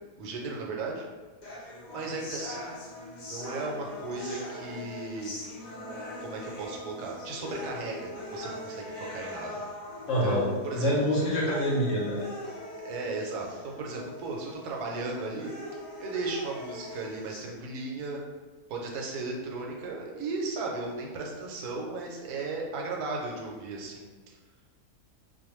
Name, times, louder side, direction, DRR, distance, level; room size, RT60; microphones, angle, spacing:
voice 1, 0.2-1.1 1.9-2.8 3.3-5.3 6.2-9.6 10.2-11.0 12.8-15.5 16.0-18.2 18.7-24.3, right 3 dB, 80° right, -1 dB, 1.1 m, -35 dB
sound 1, 1.4-17.4, left 1 dB, 85° left, 0.4 m, -41 dB
voice 2, 10.1-10.5 10.7-12.3, equal, 65° left, -4 dB, 0.8 m, -26 dB
2.5 x 2.2 x 2.9 m, 1.3 s
omnidirectional pair, 1.6 m